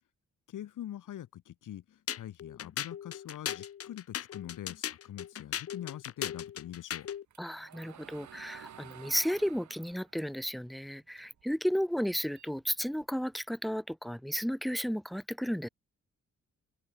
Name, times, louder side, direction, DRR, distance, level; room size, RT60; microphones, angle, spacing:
voice 1, 0.5-1.8 2.1-7.1, left 12 dB, 80° left, 1.5 m, -44 dB
sound 1, 2.1-7.2, left 9 dB, 50° left, 0.9 m, -38 dB
sound 2, 6.9-11.4 11.8-13.3, right 9 dB, 65° right, 3.2 m, -53 dB
voice 2, 7.4-15.7, equal, ahead, 1.3 m, -33 dB
open air
wide cardioid pair, 150°, 30 cm